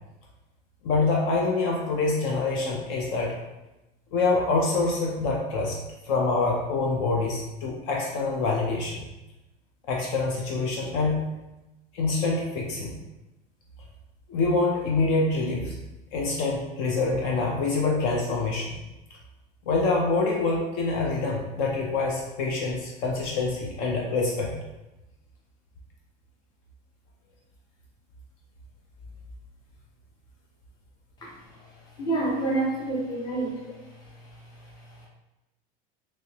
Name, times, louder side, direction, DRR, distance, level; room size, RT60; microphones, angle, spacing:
voice 1, 0.8-3.4 4.1-5.8 6.1-9.0 9.9-11.2 11.9-12.9 14.3-15.7 16.1-18.7 19.7-24.5, left 3 dB, 55° left, -1 dB, 0.5 m, -25 dB
voice 2, 32.0-33.5, right 2 dB, 20° left, -3 dB, 0.7 m, -27 dB
3.1 x 2.8 x 2.8 m, 0.99 s
cardioid pair, 165°, 19 cm